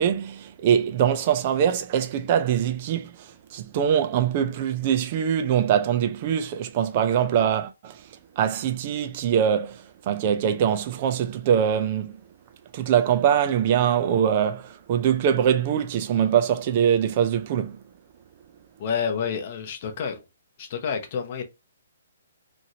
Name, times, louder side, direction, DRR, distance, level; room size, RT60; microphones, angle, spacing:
voice 1, 0.0-8.0 8.4-12.2 12.7-17.8, right 9 dB, 30° right, 0.4 m, -23 dB
voice 2, 18.8-20.2 20.6-21.4, left 6 dB, 30° left, 0.6 m, -29 dB
3.0 x 2.6 x 2.7 m
hypercardioid pair, 175°, 0 cm